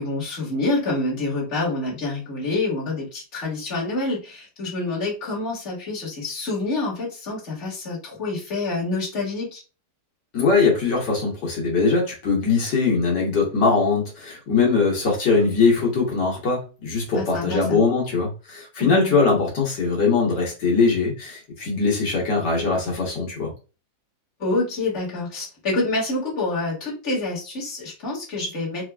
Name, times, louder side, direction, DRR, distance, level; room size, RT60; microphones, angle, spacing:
voice 1, 0.0-9.6 17.1-17.8 18.8-19.2 24.4-28.9, left 2 dB, 45° left, -5 dB, 1.9 m, -27 dB
voice 2, 10.3-23.5, left 4 dB, 90° left, -3 dB, 1.9 m, -21 dB
4.4 x 2.5 x 2.3 m, 0.33 s
omnidirectional pair, 1.8 m